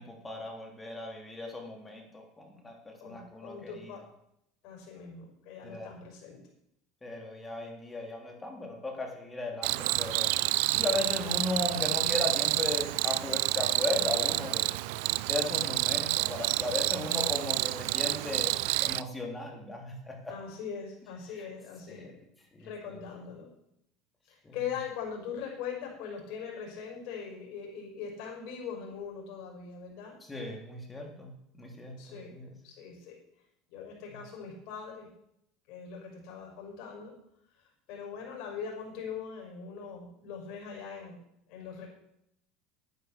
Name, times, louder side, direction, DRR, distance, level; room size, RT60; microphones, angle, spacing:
voice 1, 0.0-3.9 5.6-5.9 7.0-10.3 10.7-14.7 15.3-18.5 18.8-20.3 21.9-22.1 22.5-23.0 24.4-24.5 30.3-32.5, left 2 dB, 15° left, 1 dB, 3.3 m, -36 dB
voice 2, 3.0-4.1 4.6-6.4 20.3-22.1 22.6-23.5 24.3-30.2 32.0-32.3 32.6-33.2 33.7-35.1 35.7-37.1 37.9-41.2 41.5-41.9, left 7 dB, 65° left, 0 dB, 5.8 m, -41 dB
Cricket, 9.6-19.0, right 21 dB, 75° right, 0.4 m, -29 dB
11.0 x 9.4 x 6.8 m, 0.77 s
supercardioid pair, 115°, 0 cm